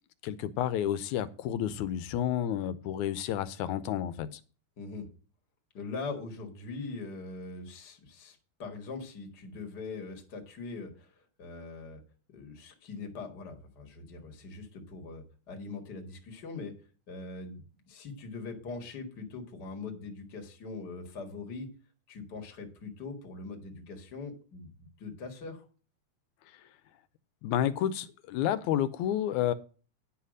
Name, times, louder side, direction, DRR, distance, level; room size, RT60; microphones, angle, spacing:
voice 1, 0.2-4.4 27.4-29.5, left 11 dB, 85° left, 2.1 m, -30 dB
voice 2, 4.8-5.1 5.7-12.0 12.3-16.7 17.1-21.7 22.1-25.7, left 3 dB, 40° left, 2.0 m, -42 dB
10.5 x 5.8 x 6.3 m
omnidirectional pair, 3.4 m